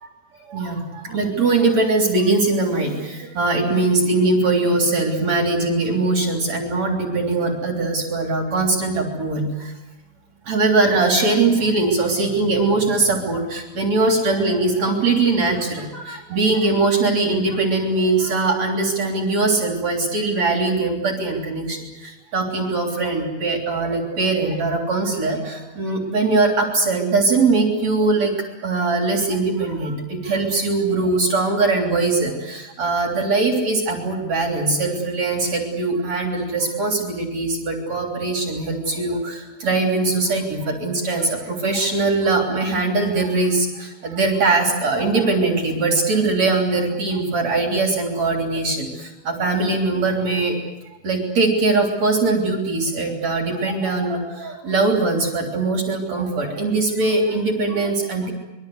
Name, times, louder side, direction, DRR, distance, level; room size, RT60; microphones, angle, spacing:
voice 1, 0.5-9.7 10.5-28.3 28.6-50.6 51.0-58.3, right 3 dB, 40° right, 1 dB, 4.3 m, -21 dB
26.0 x 23.0 x 8.0 m, 1.1 s
omnidirectional pair, 4.8 m